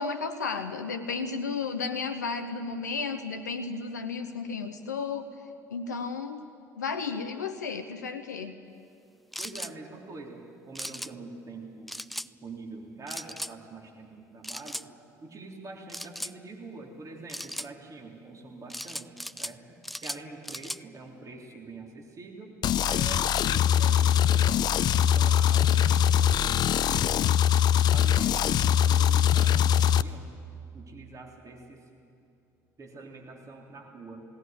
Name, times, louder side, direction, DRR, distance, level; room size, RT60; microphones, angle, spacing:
voice 1, 0.0-5.3 5.7-6.5 6.8-8.6, left 4 dB, 85° left, 8 dB, 0.8 m, -33 dB
sound 1, 9.3-9.7 10.7-11.1 11.9-12.3 13.1-13.5 14.4-14.8 15.9-16.3 17.3-17.7 18.7-19.5 19.8-20.8, equal, ahead, 0.5 m, -37 dB
voice 2, 9.4-12.0 12.2-14.8 15.2-22.6 22.9-27.2 27.9-30.3 30.7-31.9 32.8-34.3, right 3 dB, 35° right, 1 dB, 3.6 m, -45 dB
sound 2, 22.6-30.0, left 9 dB, 50° left, 0.6 m, -22 dB
20.5 x 18.0 x 9.3 m, 2.5 s
hypercardioid pair, 60°, 9 cm